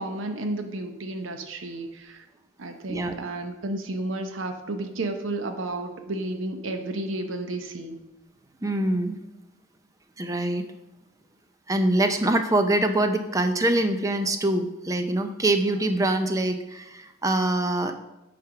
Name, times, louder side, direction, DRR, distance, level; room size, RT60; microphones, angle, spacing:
voice 1, 0.0-2.2 2.6-8.0, right 2 dB, 85° right, 5 dB, 0.8 m, -32 dB
voice 2, 8.6-9.2 10.2-10.6 11.7-17.9, right 1 dB, 15° right, 7 dB, 0.5 m, -24 dB
9.0 x 3.4 x 5.8 m, 1.0 s
head